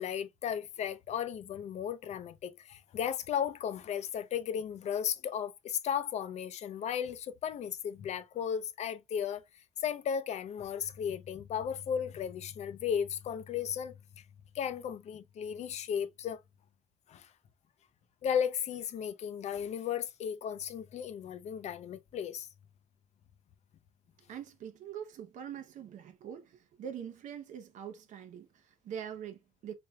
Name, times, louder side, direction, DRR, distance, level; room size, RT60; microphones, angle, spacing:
voice 1, 0.0-9.4 9.8-13.9 14.5-16.4 17.1-17.3 18.2-22.5, left 8 dB, 60° left, 0.5 m, -35 dB
voice 2, 24.3-29.7, right 8 dB, 70° right, 0.7 m, -44 dB
4.3 x 3.3 x 2.3 m
cardioid pair, 150°, 13 cm